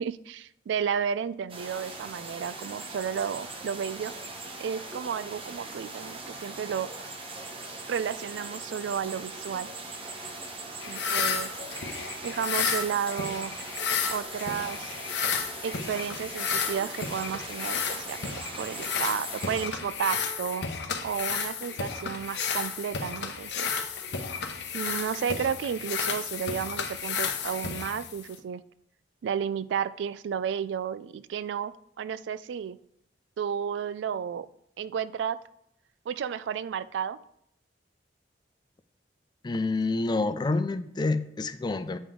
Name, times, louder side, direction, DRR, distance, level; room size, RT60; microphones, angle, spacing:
voice 1, 0.0-4.1 4.6-6.9 7.9-9.7 10.9-11.5 12.2-13.5 14.1-15.0 15.6-18.2 18.6-20.7 21.0-23.7 24.7-28.6 29.2-32.8 33.4-34.5 34.8-35.4 36.1-37.2, right 7 dB, 80° right, 16 dB, 0.3 m, -32 dB
sound 1, 1.5-19.7, right 2 dB, 30° right, 0.9 m, -40 dB
sound 2, 10.8-28.4, left 6 dB, 70° left, 0.8 m, -32 dB
voice 2, 39.4-42.0, left 3 dB, 25° left, 11 dB, 0.3 m, -28 dB
8.4 x 5.1 x 3.7 m, 0.76 s
head